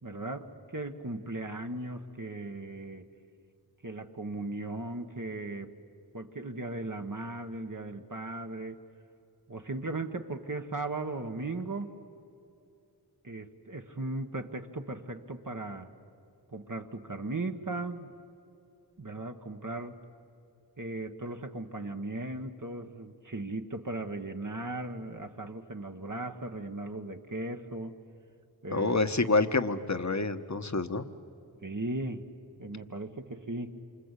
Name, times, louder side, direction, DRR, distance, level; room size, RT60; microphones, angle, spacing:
voice 1, 0.0-3.1 3.8-5.7 6.1-8.8 9.5-11.9 13.2-15.9 16.5-18.1 19.0-20.0 20.8-27.9 28.6-29.0 31.6-32.3 32.6-33.8, right 2 dB, 50° right, 4 dB, 1.4 m, -37 dB
voice 2, 28.7-31.1, left 3 dB, 45° left, 9 dB, 1.1 m, -27 dB
28.0 x 25.0 x 8.3 m, 2.7 s
wide cardioid pair, 40°, 39 cm